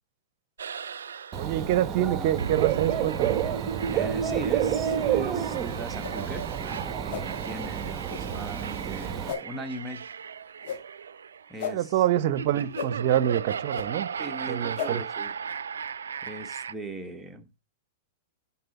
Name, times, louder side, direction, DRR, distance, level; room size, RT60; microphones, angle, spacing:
sound 1, 0.6-16.7, right 6 dB, 80° right, 0.4 m, -35 dB
Dog / Bird, 1.3-9.3, right 10 dB, 30° right, 1.0 m, -30 dB
voice 1, 1.4-3.4 11.7-14.1 14.5-15.0, right 12 dB, 55° right, 0.7 m, -26 dB
voice 2, 3.9-6.5 7.0-10.1 11.5-12.0 14.1-15.3 16.2-17.5, right 2 dB, 10° right, 1.4 m, -39 dB
sound 2, 4.9-5.0 6.0-6.1 7.1-7.2 8.1-8.2 9.3-9.4 10.6-10.8 11.6-11.7 12.7-12.9 13.7-13.9 14.7-14.9, left 8 dB, 60° left, 1.5 m, -33 dB
11.0 x 4.2 x 4.1 m
hypercardioid pair, 115°, 0 cm